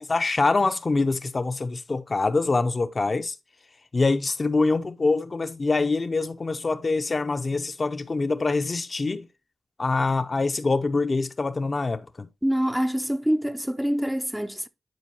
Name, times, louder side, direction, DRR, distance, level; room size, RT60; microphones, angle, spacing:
voice 1, 0.0-3.4 3.9-9.3 9.8-12.3, left 3 dB, 50° left, 0.6 m, -25 dB
voice 2, 12.4-14.7, equal, 5° right, 0.5 m, -25 dB
10.5 x 4.5 x 2.9 m
cardioid pair, 50°, 0 cm